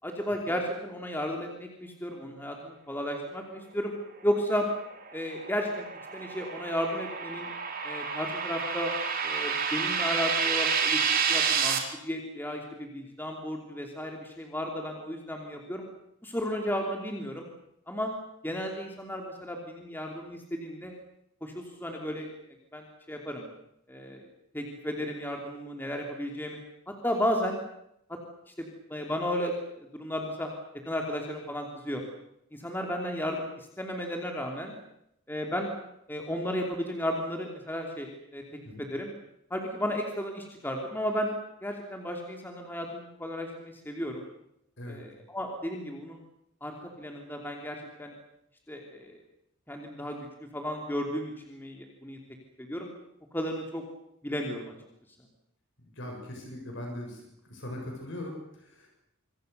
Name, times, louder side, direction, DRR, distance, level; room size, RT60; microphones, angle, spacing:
voice 1, 0.0-3.9 4.2-4.7 5.1-5.8 6.1-7.5 7.8-8.9 9.2-11.0 11.3-11.8 12.0-15.9 16.2-17.5 17.9-18.1 18.4-20.9 21.4-22.3 22.7-23.5 23.9-24.3 24.5-26.6 26.9-27.6 28.1-28.2 28.5-30.5 30.8-32.0 32.5-34.8 35.3-35.7 36.1-38.4 38.8-39.1 39.5-41.3 41.6-44.2 44.9-46.2 46.6-48.1 48.7-49.2 49.7-50.2 50.5-52.2 52.6-52.9 53.3-53.8 54.2-54.7, equal, 10° left, 2 dB, 3.0 m, -33 dB
sound 1, 5.0-11.8, right 6 dB, 40° right, 3.3 m, -29 dB
voice 2, 55.8-58.9, left 1 dB, 60° left, 1 dB, 6.8 m, -40 dB
27.0 x 24.0 x 6.9 m, 0.78 s
head